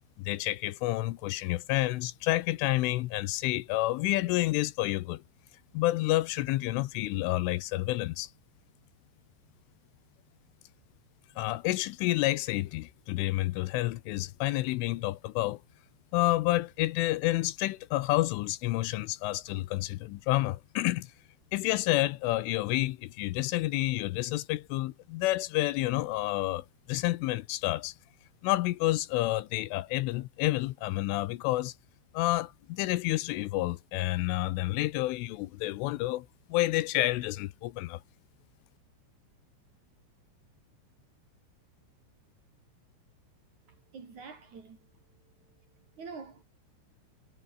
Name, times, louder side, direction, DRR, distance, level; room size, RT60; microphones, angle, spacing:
voice 1, 0.2-5.2 5.7-8.3 11.4-15.6 16.1-21.1 21.5-27.9 28.4-31.7 32.1-38.0, left 18 dB, 80° left, 3.3 m, -29 dB
voice 2, 43.9-44.8 46.0-46.4, right 5 dB, 40° right, 4.4 m, -45 dB
omnidirectional pair, 5.7 m